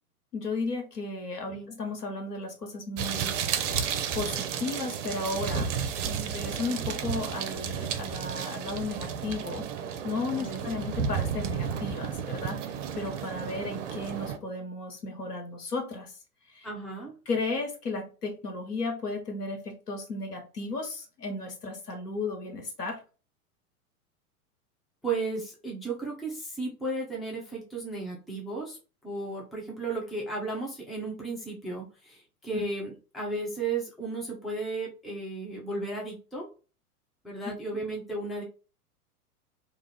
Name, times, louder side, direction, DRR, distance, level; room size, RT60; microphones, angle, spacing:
voice 1, 0.3-3.4 4.1-5.7 6.3-9.7 10.0-16.1 16.5-16.7 17.3-23.0 32.5-32.7, left 3 dB, 90° left, 3 dB, 1.0 m, -34 dB
sound 1, 3.0-14.4, right 7 dB, 55° right, 0.6 m, -32 dB
voice 2, 16.6-17.1 25.0-28.8 29.0-36.5 37.2-38.4, right 3 dB, ahead, -3 dB, 0.4 m, -34 dB
2.4 x 2.4 x 3.2 m, 0.34 s
figure-of-eight pair, 95°, 45 cm